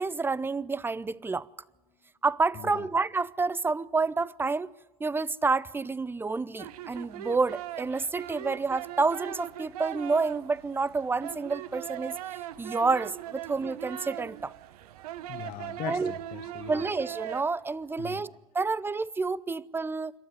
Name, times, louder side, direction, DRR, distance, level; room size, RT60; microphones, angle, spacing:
voice 1, 0.0-1.5 2.2-4.7 5.0-12.2 12.6-14.5 15.8-16.1 16.7-20.1, right 4 dB, 10° right, 0.6 m, -29 dB
sound 1, 6.6-17.4, right 13 dB, 75° right, 1.0 m, -40 dB
sound 2, 9.4-11.0 13.3-13.6 15.3-15.8 16.4-18.4, right 2 dB, 30° right, 2.5 m, -55 dB
voice 2, 15.2-16.8 18.0-18.2, left 12 dB, 50° left, 1.6 m, -40 dB
27.5 x 12.5 x 9.4 m
hypercardioid pair, 85°, 19 cm